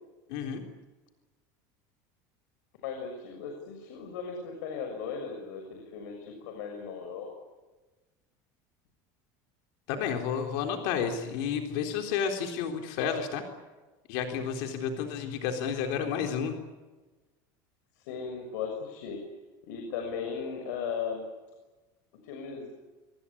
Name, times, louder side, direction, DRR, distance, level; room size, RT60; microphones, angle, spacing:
voice 1, 0.3-0.6 9.9-13.4 14.1-16.6, left 7 dB, 70° left, 4 dB, 3.7 m, -31 dB
voice 2, 2.8-7.3 18.0-19.2 19.6-21.2 22.2-22.7, left 6 dB, 90° left, 3 dB, 6.6 m, -37 dB
26.0 x 24.0 x 8.7 m, 1.2 s
cardioid pair, 150°, 10 cm